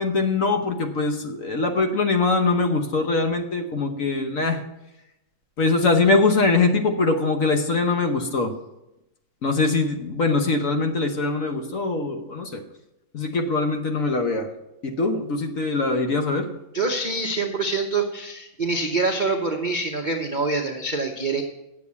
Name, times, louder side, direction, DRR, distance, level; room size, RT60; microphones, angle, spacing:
voice 1, 0.0-4.6 5.6-8.5 9.4-12.6 13.1-14.5 14.8-16.5, left 3 dB, 55° left, 6 dB, 1.1 m, -22 dB
voice 2, 16.7-21.4, right 3 dB, 45° right, 3 dB, 0.6 m, -25 dB
8.6 x 7.0 x 8.4 m, 0.90 s
omnidirectional pair, 2.1 m